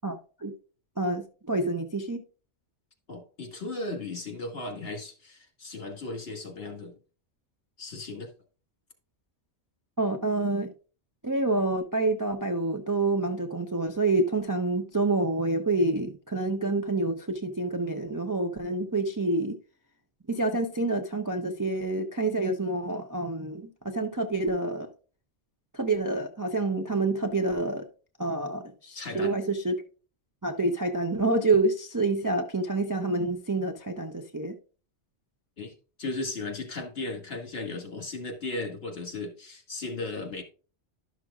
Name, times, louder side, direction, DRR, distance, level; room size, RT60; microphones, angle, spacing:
voice 1, 0.0-0.5 1.0-2.2 10.0-10.7 11.2-19.6 20.3-24.9 25.7-27.8 28.2-29.8 30.4-34.6, right 2 dB, 25° right, 0.5 m, -27 dB
voice 2, 3.1-6.9 7.8-8.3 29.0-29.3 35.6-35.7 36.0-40.4, left 2 dB, 55° left, 2.0 m, -36 dB
11.5 x 6.2 x 2.4 m
omnidirectional pair, 1.2 m